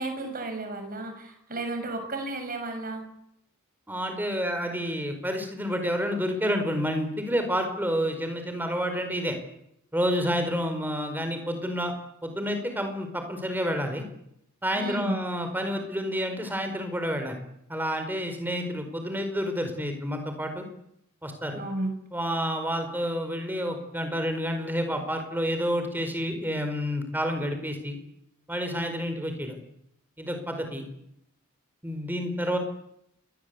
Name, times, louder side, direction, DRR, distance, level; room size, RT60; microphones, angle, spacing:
voice 1, 0.0-3.0 14.7-15.2 21.5-21.9, right 2 dB, 40° right, 6 dB, 6.7 m, -33 dB
voice 2, 3.9-9.4 9.9-11.9 12.2-14.0 14.6-17.4 17.7-20.6 21.2-21.6 22.1-28.0 28.5-29.6 30.2-30.8 31.8-32.6, equal, 10° right, 6 dB, 4.9 m, -29 dB
28.0 x 21.0 x 8.4 m, 0.77 s
head